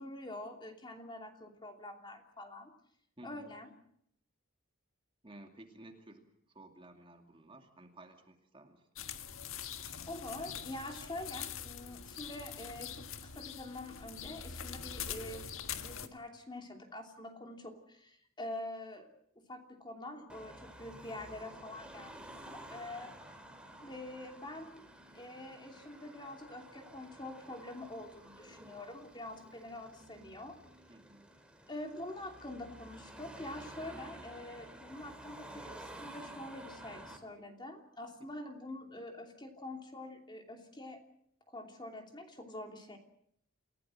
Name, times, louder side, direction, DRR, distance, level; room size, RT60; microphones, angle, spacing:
voice 1, 0.0-2.7 3.2-3.7 10.1-15.4 15.8-19.1 19.4-23.1 23.8-24.9 25.1-30.6 31.7-41.0 41.5-43.0, left 1 dB, 20° left, 4 dB, 3.0 m, -46 dB
voice 2, 3.2-3.5 5.2-8.9 22.7-23.1 30.9-31.3 33.9-34.2, right 1 dB, 25° right, 4 dB, 2.5 m, -55 dB
sound 1, 9.0-16.1, left 8 dB, 75° left, 1.6 m, -44 dB
Car passing by / Traffic noise roadway noise / Engine, 20.3-37.2, right 1 dB, 5° right, 3.0 m, -52 dB
28.5 x 17.0 x 7.6 m, 0.72 s
head